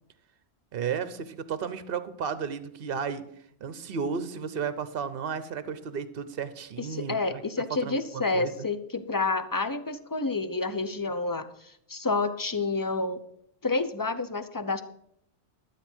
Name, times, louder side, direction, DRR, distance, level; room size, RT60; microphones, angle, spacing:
voice 1, 0.7-3.3 3.6-7.4 7.8-8.7, right 6 dB, 60° right, 13 dB, 1.0 m, -33 dB
voice 2, 6.8-13.2 13.6-14.8, left 3 dB, 20° left, 10 dB, 0.6 m, -29 dB
12.5 x 8.2 x 6.1 m, 0.71 s
omnidirectional pair, 1.1 m